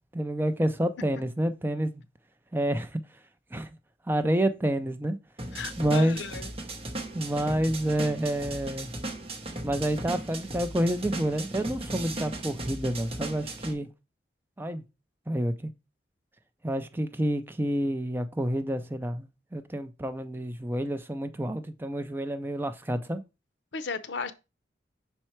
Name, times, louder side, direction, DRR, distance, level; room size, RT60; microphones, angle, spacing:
voice 1, 0.1-1.9 2.5-3.0 3.5-3.7 4.1-5.2 5.8-6.2 7.1-8.9 9.6-13.9 14.6-14.8 15.3-15.7 16.6-23.2, right 1 dB, 10° right, 0.4 m, -28 dB
sound 1, 5.4-13.7, right 2 dB, 30° right, 1.0 m, -37 dB
voice 2, 5.5-6.5 23.7-24.3, left 5 dB, 80° left, 0.7 m, -35 dB
5.5 x 4.4 x 4.4 m
head